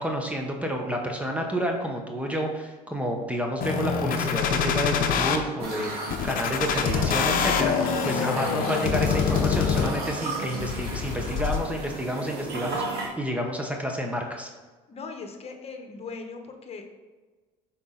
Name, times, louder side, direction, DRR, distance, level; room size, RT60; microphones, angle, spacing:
voice 1, 0.0-14.5, equal, 10° right, 2 dB, 1.0 m, -30 dB
sound 1, 3.6-5.4 6.1-10.1 10.6-11.6, left 6 dB, 60° left, 0.7 m, -25 dB
sound 2, 5.6-13.1, right 3 dB, 70° right, 1.6 m, -35 dB
voice 2, 14.9-16.8, left 4 dB, 40° left, 5 dB, 1.1 m, -39 dB
6.0 x 4.2 x 3.9 m, 1.3 s
supercardioid pair, 75°, 16 cm